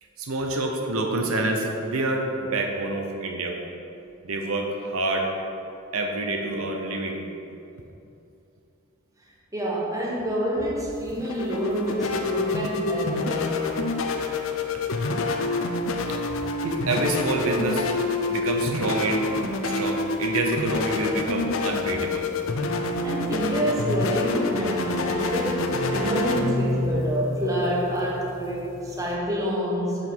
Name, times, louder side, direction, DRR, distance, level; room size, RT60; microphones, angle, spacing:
voice 1, 0.2-3.6 4.2-5.3 5.9-7.2 14.7-14.8 16.6-17.9 18.3-19.3 19.6-22.3, right 2 dB, 90° right, 2 dB, 0.8 m, -27 dB
voice 2, 9.5-13.9 23.0-30.1, equal, 15° right, -4 dB, 1.0 m, -27 dB
sound 1, 10.9-29.1, left 3 dB, 70° left, 0.6 m, -27 dB
6.3 x 5.4 x 4.6 m, 2.8 s
head